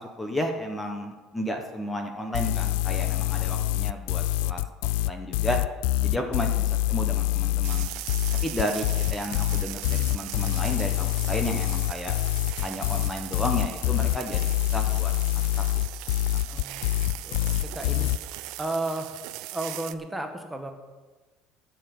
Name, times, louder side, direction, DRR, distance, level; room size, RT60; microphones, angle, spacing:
voice 1, 0.0-4.6 5.0-5.6 6.0-7.9 8.4-12.2 12.6-15.1 15.5-15.6 16.5-16.6, left 1 dB, 10° left, 3 dB, 1.2 m, -32 dB
sound 1, 2.3-18.2, left 16 dB, 90° left, 0.3 m, -25 dB
sound 2, 7.6-19.9, right 17 dB, 75° right, 0.6 m, -39 dB
voice 2, 16.5-16.9 17.2-18.1 18.6-19.1 19.5-20.7, right 2 dB, 5° right, 5 dB, 1.3 m, -33 dB
11.5 x 7.1 x 8.3 m, 1.2 s
cardioid pair, 140°, 0 cm